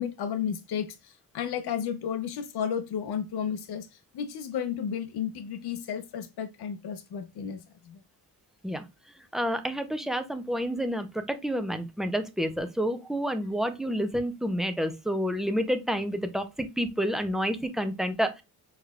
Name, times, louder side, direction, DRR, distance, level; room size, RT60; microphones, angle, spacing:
voice 1, 0.0-8.0, left 8 dB, 75° left, 0.7 m, -33 dB
voice 2, 9.3-18.4, equal, ahead, 0.5 m, -29 dB
6.4 x 3.2 x 2.3 m
wide cardioid pair, 175°, 39 cm